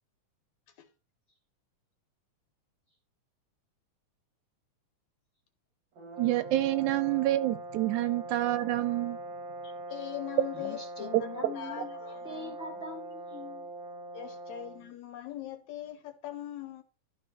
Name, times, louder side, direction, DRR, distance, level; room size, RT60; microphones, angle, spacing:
sound 1, 6.0-14.9, right 2 dB, 55° right, 1.4 m, -42 dB
voice 1, 6.2-9.2 11.1-11.5, right 15 dB, 80° right, 1.9 m, -28 dB
voice 2, 9.6-12.6 14.1-16.8, left 13 dB, 70° left, 2.1 m, -41 dB
voice 3, 10.5-13.7, left 2 dB, 25° left, 1.5 m, -43 dB
12.0 x 4.7 x 4.4 m
omnidirectional pair, 3.6 m